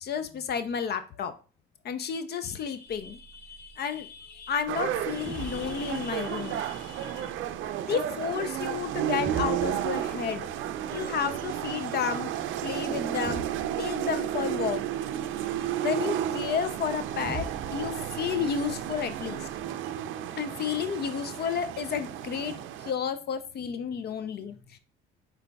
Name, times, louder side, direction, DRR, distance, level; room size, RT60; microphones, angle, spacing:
voice 1, 0.0-1.3 1.8-7.3 7.9-10.5 10.9-12.3 12.6-13.4 13.8-14.8 15.8-19.5 20.4-22.6 22.8-24.8, left 7 dB, 50° left, 11 dB, 0.5 m, -32 dB
sound 1, 2.9-19.7, right 3 dB, 20° right, 0.6 m, -46 dB
sound 2, 4.7-22.9, right 11 dB, 65° right, 0.5 m, -32 dB
5.0 x 4.5 x 2.2 m, 0.36 s
supercardioid pair, 85°, 21 cm